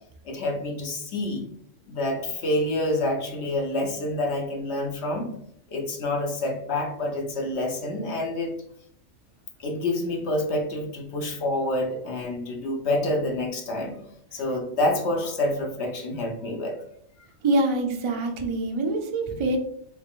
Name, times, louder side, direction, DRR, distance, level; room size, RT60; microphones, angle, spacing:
voice 1, 0.2-1.5 1.9-5.3 5.7-8.5 9.6-14.0 14.3-16.8, left 1 dB, 60° left, 1 dB, 1.0 m, -27 dB
voice 2, 17.4-19.6, right 2 dB, 50° right, 3 dB, 0.3 m, -25 dB
3.6 x 3.5 x 2.5 m, 0.72 s
omnidirectional pair, 1.3 m